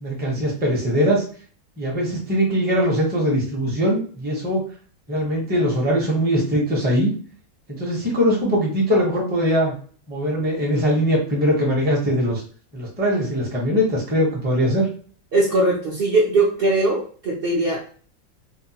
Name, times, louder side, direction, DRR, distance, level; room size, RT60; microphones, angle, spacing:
voice 1, 0.0-1.2 1.8-4.6 5.1-7.1 7.7-9.7 10.1-12.4 12.7-14.9, equal, 10° right, -3 dB, 0.6 m, -21 dB
voice 2, 15.3-17.9, right 2 dB, 55° right, -4 dB, 0.7 m, -20 dB
2.8 x 2.2 x 2.8 m, 0.43 s
omnidirectional pair, 1.4 m